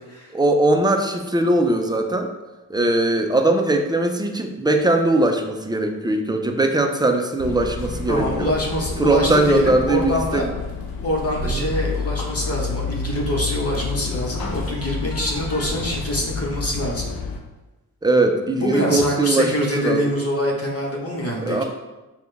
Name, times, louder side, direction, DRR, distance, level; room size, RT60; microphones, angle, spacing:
voice 1, 0.3-2.3 2.7-8.5 9.0-10.5 11.6-11.7 18.0-20.0 21.4-21.6, right 2 dB, 10° right, 4 dB, 0.5 m, -20 dB
sound 1, 7.4-17.4, left 3 dB, 75° left, 0.7 m, -29 dB
voice 2, 8.1-10.5 11.0-17.1 18.6-21.6, left 1 dB, 40° left, -2 dB, 1.1 m, -25 dB
4.9 x 2.4 x 3.3 m, 1.1 s
cardioid pair, 60°, 37 cm